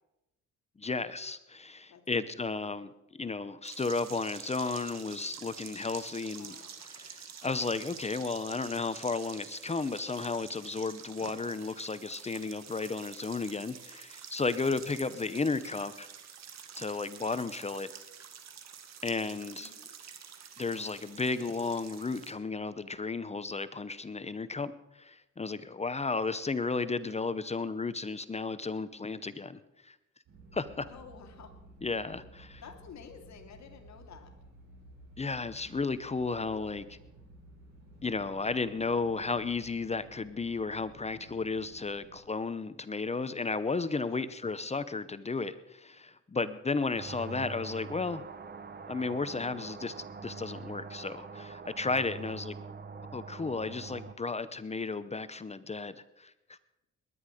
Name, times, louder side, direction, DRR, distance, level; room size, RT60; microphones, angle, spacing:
voice 1, 0.8-6.5 6.9-16.1 16.8-17.9 19.0-19.7 20.6-30.0 30.5-30.9 31.8-32.6 35.2-37.0 38.0-48.2 48.9-52.5 53.1-56.6, left 4 dB, 20° left, 14 dB, 0.8 m, -34 dB
voice 2, 1.9-2.3 2.8-2.9 6.3-6.8 19.6-19.9 30.9-31.5 32.6-34.3 44.1-44.3 52.2-52.4, left 6 dB, 65° left, 5 dB, 2.5 m, -52 dB
sound 1, 3.6-22.3, right 8 dB, 60° right, 1.9 m, -48 dB
sound 2, 30.3-42.2, right 1 dB, 80° right, 7.1 m, -54 dB
sound 3, 47.0-54.1, right 5 dB, 35° right, 1.1 m, -44 dB
20.5 x 10.5 x 5.1 m, 0.92 s
cardioid pair, 90°, 30 cm